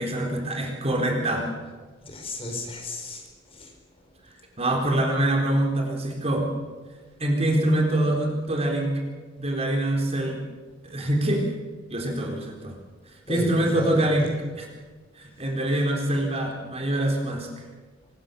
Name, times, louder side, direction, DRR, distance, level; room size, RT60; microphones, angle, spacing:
voice 1, 0.0-1.5 4.6-6.5 7.2-9.0 9.4-10.4 10.8-11.5 11.9-12.7 13.3-14.3 14.6-14.7 15.1-17.5, right 1 dB, 35° right, 1 dB, 4.2 m, -24 dB
voice 2, 2.0-3.7 13.3-14.4 15.7-15.8, left 1 dB, 30° left, 4 dB, 4.5 m, -34 dB
24.5 x 21.0 x 7.0 m, 1.4 s
head